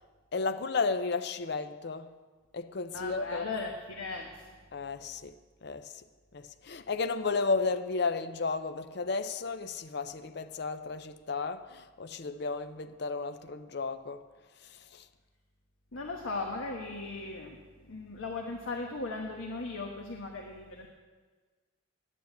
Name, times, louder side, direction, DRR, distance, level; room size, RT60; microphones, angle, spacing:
voice 1, 0.3-2.1 2.5-3.5 4.7-5.3 5.6-5.9 6.3-14.2 14.6-15.0, left 4 dB, 55° left, 0.6 m, -33 dB
voice 2, 2.9-4.5 15.9-17.6 17.9-20.9, left 3 dB, 85° left, 1.3 m, -37 dB
9.9 x 9.4 x 7.9 m
head